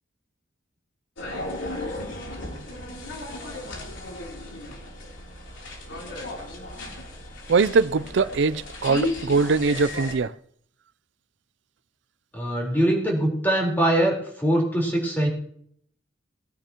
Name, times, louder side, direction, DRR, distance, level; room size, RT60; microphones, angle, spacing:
sound 1, 1.2-10.1, left 1 dB, 80° left, 3.3 m, -35 dB
voice 1, 7.5-10.3, right 4 dB, 65° right, 0.4 m, -22 dB
voice 2, 12.3-15.3, right 1 dB, 10° left, 4.1 m, -22 dB
20.5 x 10.0 x 3.0 m
head